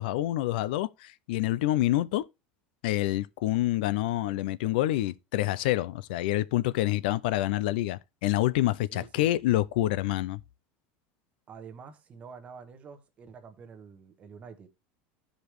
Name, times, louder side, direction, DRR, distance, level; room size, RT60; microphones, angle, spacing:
voice 1, 0.0-2.3 2.8-10.4, left 15 dB, 80° left, 0.4 m, -27 dB
voice 2, 8.9-9.3 11.5-14.7, right 6 dB, 25° right, 1.1 m, -47 dB
15.0 x 5.1 x 3.0 m
cardioid pair, 165°, 5 cm